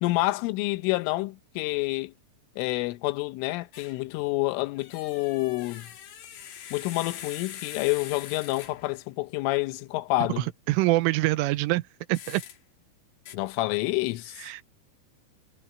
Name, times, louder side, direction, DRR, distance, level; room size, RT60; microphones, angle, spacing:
voice 1, 0.0-2.1 2.6-5.9 6.7-10.5 13.3-14.5, left 20 dB, 80° left, 3.2 m, -28 dB
sound 1, 3.7-4.0 4.8-9.0 12.1-12.6 13.3-13.4, left 9 dB, 60° left, 3.2 m, -43 dB
voice 2, 10.4-11.8 12.1-12.4 14.4-14.6, right 19 dB, 90° right, 3.3 m, -25 dB
omnidirectional pair, 5.7 m